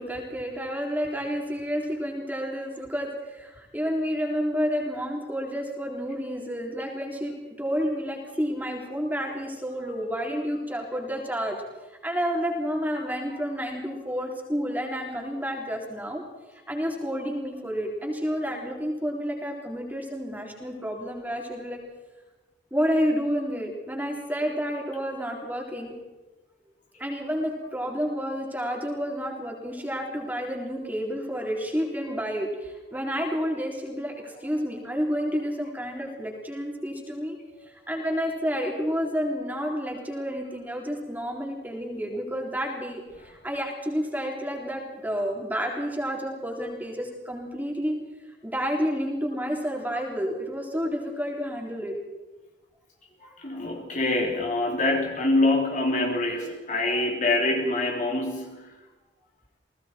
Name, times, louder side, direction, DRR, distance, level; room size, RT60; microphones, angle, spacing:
voice 1, 0.0-11.6 12.0-16.2 16.7-21.8 22.7-25.9 27.0-37.3 37.7-48.0 48.4-51.9 53.2-53.4, equal, 10° right, 0 dB, 4.0 m, -30 dB
voice 2, 53.4-58.7, left 2 dB, 40° left, 1 dB, 3.2 m, -25 dB
29.5 x 19.0 x 4.6 m, 1.1 s
head